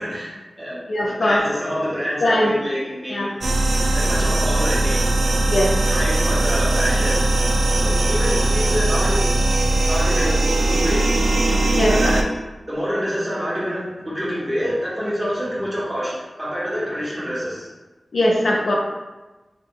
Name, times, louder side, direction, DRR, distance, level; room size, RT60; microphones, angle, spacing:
voice 1, 0.0-0.8 1.2-3.5 3.9-5.0 5.9-7.3 7.7-9.3 9.9-10.4 10.7-11.1 11.9-12.3 12.7-17.7, equal, 15° right, -8 dB, 1.4 m, -26 dB
voice 2, 0.9-1.4 2.2-2.5 3.1-3.3 5.5-5.7 11.7-12.1 18.1-18.7, left 1 dB, 80° left, -2 dB, 0.6 m, -20 dB
sound 1, 3.4-12.2, right 2 dB, 75° right, 0.3 m, -19 dB
3.5 x 2.3 x 3.7 m, 1.1 s
wide cardioid pair, 90°, 0 cm